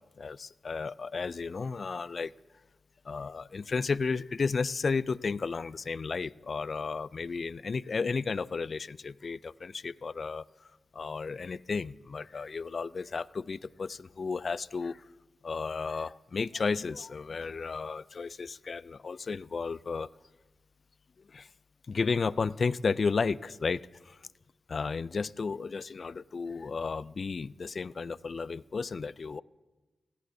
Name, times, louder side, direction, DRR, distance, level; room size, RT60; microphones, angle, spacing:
voice 1, 0.2-2.3 3.1-10.4 10.9-15.1 15.4-20.1 21.3-21.5 21.9-24.2 24.7-29.4, left 4 dB, 55° left, 20 dB, 0.3 m, -33 dB
17.0 x 16.0 x 2.7 m, 1.2 s
cardioid pair, 50°, 0 cm